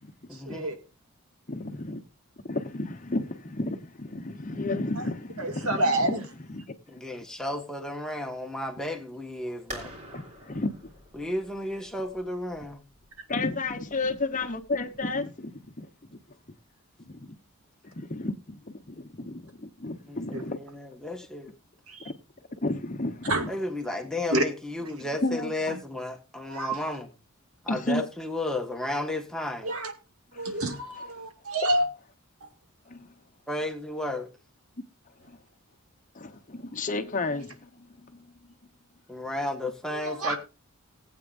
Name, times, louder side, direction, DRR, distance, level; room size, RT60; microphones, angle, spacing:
voice 1, 0.3-0.8 6.9-9.9 11.1-12.8 20.1-21.5 23.5-27.1 27.6-29.7 33.5-34.3 39.1-40.4, left 1 dB, 5° left, 1.5 m, -33 dB
voice 2, 1.5-2.0 2.4-6.2 6.5-6.6 6.9-7.0 10.1-10.9 13.3-16.2 17.1-17.4 18.0-20.6 22.0-22.1 22.6-23.5 25.0-25.8 27.7-28.0 30.3-30.6 32.9-33.1 35.3-35.4 36.1-38.3, left 2 dB, 35° left, 1.0 m, -32 dB
voice 3, 5.4-6.2 20.3-20.4 21.9-22.1 23.3-23.5 24.3-24.5 26.5-26.8 29.6-29.9 30.4-31.9 32.4-32.5 39.9-40.4, right 1 dB, 80° right, 2.3 m, -28 dB
sound 1, 9.7-15.2, equal, 30° right, 3.8 m, -47 dB
19.0 x 8.4 x 2.6 m
head